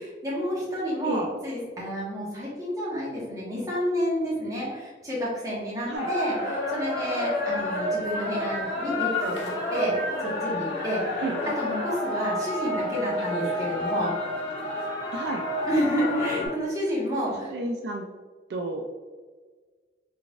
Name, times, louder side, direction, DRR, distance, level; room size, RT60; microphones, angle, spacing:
voice 1, 0.0-9.3 9.7-9.9 10.2-11.0 11.6-14.1 15.6-17.5, equal, 20° right, -7 dB, 1.2 m, -30 dB
sound 1, 5.9-16.5, left 1 dB, 80° left, 1.4 m, -29 dB
voice 2, 15.1-15.4 17.4-18.1 18.5-18.8, right 2 dB, 65° right, 2 dB, 0.3 m, -31 dB
3.9 x 3.3 x 2.4 m, 1.4 s
head